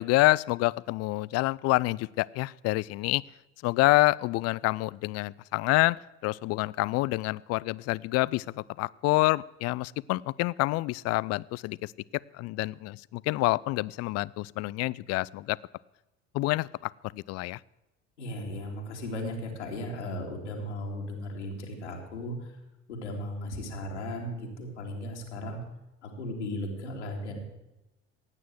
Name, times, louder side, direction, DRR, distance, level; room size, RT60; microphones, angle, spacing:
voice 1, 0.0-3.2 3.6-11.9 12.3-15.6 16.3-17.6, left 20 dB, 50° left, 23 dB, 0.5 m, -27 dB
voice 2, 18.2-22.6 22.9-25.6 26.0-27.4, left 1 dB, 80° left, 1 dB, 2.8 m, -36 dB
16.5 x 9.4 x 7.7 m, 0.99 s
figure-of-eight pair, 60°, 34 cm